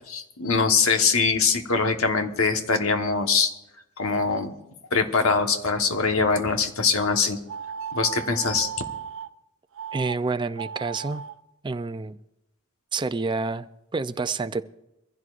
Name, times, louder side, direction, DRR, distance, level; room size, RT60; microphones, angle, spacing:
voice 1, 0.1-3.5 4.0-4.5 4.9-7.4 7.9-8.7, left 4 dB, 75° left, 6 dB, 1.3 m, -23 dB
sound 1, 7.5-9.3 9.7-10.1 10.5-11.3, right 7 dB, 65° right, 0.6 m, -35 dB
voice 2, 9.9-11.2 11.6-12.2 12.9-14.7, right 3 dB, 20° right, 11 dB, 0.4 m, -28 dB
23.5 x 15.5 x 2.5 m, 0.91 s
head